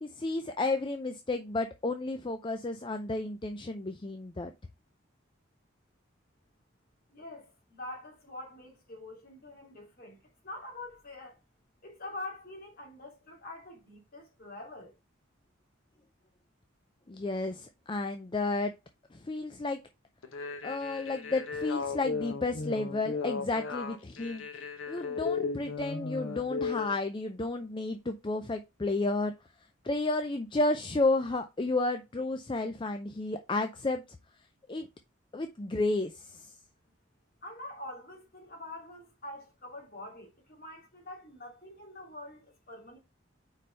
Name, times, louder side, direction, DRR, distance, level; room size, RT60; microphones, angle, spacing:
voice 1, 0.0-4.5 17.1-18.7 19.1-19.8 20.6-24.4 24.9-29.3 29.8-34.0 34.7-34.9 35.3-36.5, left 2 dB, 25° left, 0.5 m, -32 dB
voice 2, 7.1-10.2 10.4-11.4 11.8-15.0 37.4-43.0, left 2 dB, 45° left, 2.8 m, -45 dB
sound 1, 20.2-26.9, left 4 dB, 85° left, 1.0 m, -36 dB
4.9 x 4.3 x 5.4 m
head